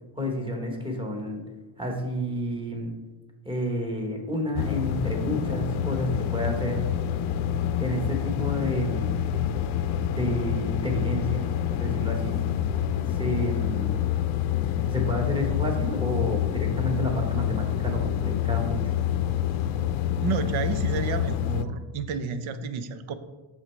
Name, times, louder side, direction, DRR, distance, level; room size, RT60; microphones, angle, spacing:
voice 1, 0.2-1.4 1.8-2.9 3.4-6.8 7.8-9.2 10.0-11.5 11.8-12.4 13.1-14.0 14.9-18.9, equal, 10° right, 2 dB, 1.0 m, -30 dB
sound 1, 4.6-21.7, left 10 dB, 75° left, 0.6 m, -27 dB
voice 2, 20.2-23.1, right 6 dB, 75° right, 11 dB, 0.7 m, -30 dB
7.7 x 6.3 x 3.2 m, 1.2 s
cardioid pair, 160°, 48 cm